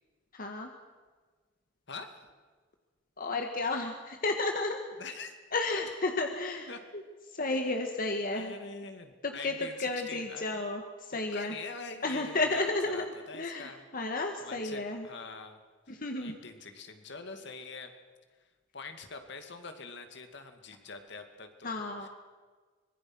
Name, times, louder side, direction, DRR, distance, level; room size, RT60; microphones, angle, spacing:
voice 1, 0.3-0.7 3.2-4.8 5.5-6.7 6.9-7.0 7.3-8.5 9.2-11.5 12.0-15.1 15.9-16.3 21.6-22.1, left 2 dB, 50° left, 4 dB, 1.6 m, -32 dB
voice 2, 1.9-2.2 5.0-5.3 5.7-5.8 6.7-6.8 7.5-7.6 8.3-10.6 11.1-14.1 14.4-15.6 15.9-17.9 18.7-22.1, left 4 dB, 65° left, 6 dB, 2.3 m, -45 dB
24.5 x 21.5 x 6.2 m, 1.4 s
head